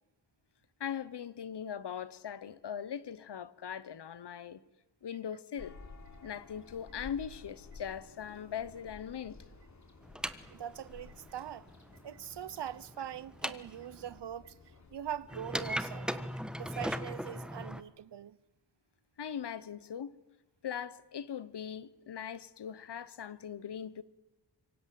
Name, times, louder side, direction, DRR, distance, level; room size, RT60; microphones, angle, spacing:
voice 1, 0.8-4.6 5.0-5.7 6.2-9.4 19.2-20.1 20.6-24.0, left 8 dB, 70° left, 1.2 m, -40 dB
sound 1, 5.6-15.8, left 3 dB, 40° left, 4.0 m, -54 dB
sound 2, 10.0-14.1 15.3-17.8, equal, ahead, 1.4 m, -39 dB
voice 2, 10.5-11.7 12.0-14.5 14.9-16.1 16.6-18.4, right 10 dB, 70° right, 0.9 m, -42 dB
26.5 x 24.0 x 7.8 m
wide cardioid pair, 95°, 42 cm